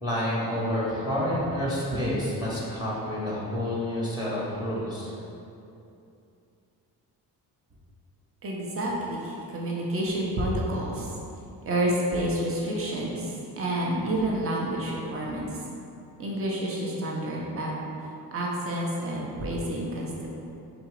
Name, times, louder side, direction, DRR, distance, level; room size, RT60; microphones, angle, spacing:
voice 1, 0.0-5.1, left 1 dB, 10° right, -6 dB, 1.0 m, -29 dB
voice 2, 8.4-11.1 11.6-15.6 16.2-17.7 18.3-20.3, right 1 dB, 35° right, -3 dB, 0.9 m, -29 dB
3.9 x 2.7 x 4.7 m, 2.7 s
cardioid pair, 90°, 39 cm